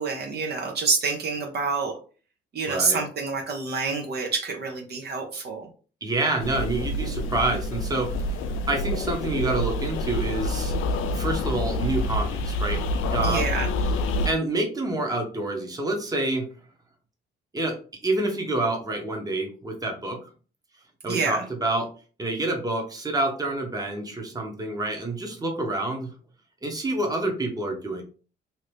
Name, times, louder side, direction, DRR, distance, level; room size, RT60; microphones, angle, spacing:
voice 1, 0.0-1.9 2.5-5.7 13.2-13.7 21.1-21.4, right 4 dB, 55° right, 2 dB, 0.8 m, -27 dB
voice 2, 2.7-3.0 6.0-8.1 8.7-10.7 11.1-12.8 13.1-13.4 14.2-16.5 17.5-17.8 18.0-20.2 21.0-21.9 22.2-26.1 26.6-28.0, right 2 dB, 20° right, 2 dB, 0.9 m, -27 dB
sound 1, 6.4-14.3, left 1 dB, 85° left, 0.4 m, -27 dB
2.8 x 2.6 x 3.3 m, 0.38 s
cardioid pair, 90°, 20 cm